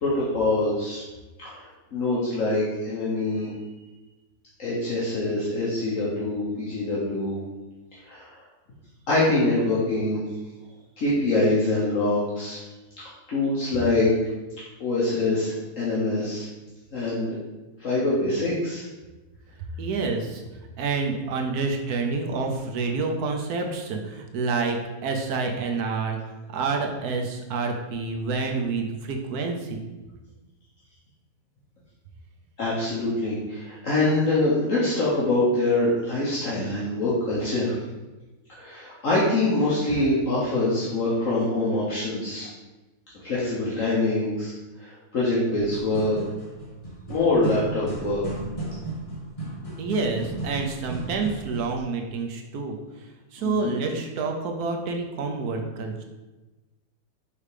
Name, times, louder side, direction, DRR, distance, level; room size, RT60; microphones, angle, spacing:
voice 1, 0.0-1.0 1.4-3.5 4.6-7.4 8.1-8.3 9.1-10.2 11.0-12.6 13.3-14.1 14.8-16.5 16.9-17.4 17.8-18.8 32.6-37.7 38.5-42.5 43.2-44.5 44.8-46.2 47.1-48.2 53.4-53.7, left 2 dB, 60° left, -7 dB, 1.4 m, -24 dB
voice 2, 19.8-20.4 20.8-24.8 25.0-29.8 49.8-56.0, right 4 dB, 80° right, 2 dB, 1.3 m, -28 dB
sound 1, 45.7-51.8, right 1 dB, 25° left, 1.3 m, -35 dB
5.6 x 3.4 x 4.9 m, 1.1 s
omnidirectional pair, 1.6 m